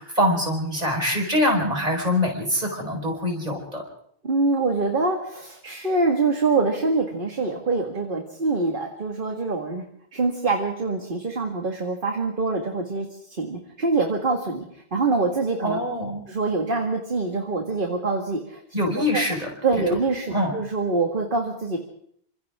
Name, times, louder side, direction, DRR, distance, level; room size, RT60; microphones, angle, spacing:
voice 1, 0.0-3.8 15.6-16.3 18.7-19.5 19.9-20.0 20.3-20.5, left 1 dB, 40° right, 1 dB, 5.1 m, -24 dB
voice 2, 4.2-9.8 10.1-15.8 16.3-18.6 19.1-19.2 19.6-21.8, right 3 dB, 55° right, 2 dB, 2.2 m, -25 dB
28.5 x 26.0 x 3.7 m, 0.67 s
omnidirectional pair, 1.0 m